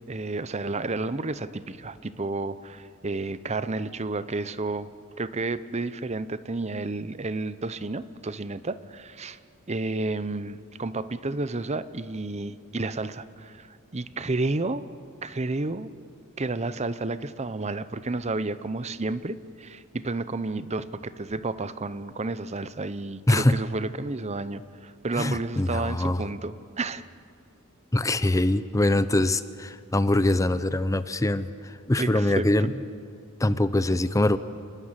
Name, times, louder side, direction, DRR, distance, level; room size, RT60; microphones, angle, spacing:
voice 1, 0.1-4.9 5.2-9.4 9.7-14.8 15.2-15.9 16.4-27.0 32.0-32.7, right 2 dB, 30° right, 14 dB, 0.7 m, -31 dB
voice 2, 23.3-23.6 25.2-26.2 27.9-32.7 33.4-34.4, left 1 dB, 15° left, 13 dB, 0.6 m, -23 dB
28.5 x 20.0 x 7.5 m, 2.3 s
head